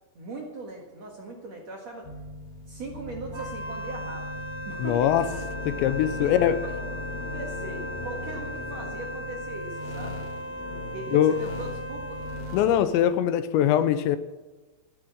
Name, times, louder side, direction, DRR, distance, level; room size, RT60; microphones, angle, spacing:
voice 1, 0.2-2.1 2.7-4.3 4.6-5.1 6.2-6.3 6.8-10.2 10.9-12.2, right 2 dB, 55° right, -1 dB, 2.0 m, -39 dB
sound 1, 2.0-13.1, left 3 dB, 60° left, 3.5 m, -38 dB
Wind instrument woodwind instrument, 3.3-12.6, right 1 dB, 75° right, 0.6 m, -37 dB
voice 2, 4.8-5.3 5.7-6.6 11.1-11.4 12.5-14.2, left 10 dB, 80° left, 12 dB, 2.9 m, -22 dB
14.0 x 10.5 x 7.4 m, 1.2 s
omnidirectional pair, 5.3 m